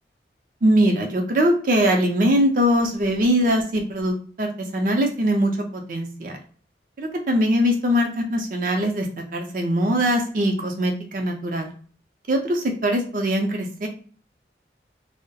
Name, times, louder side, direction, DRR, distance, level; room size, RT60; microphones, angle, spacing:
voice 1, 0.6-6.4 7.0-9.1 9.3-11.7 12.3-13.9, equal, 50° right, 3 dB, 0.5 m, -22 dB
2.2 x 2.0 x 2.7 m, 0.43 s
head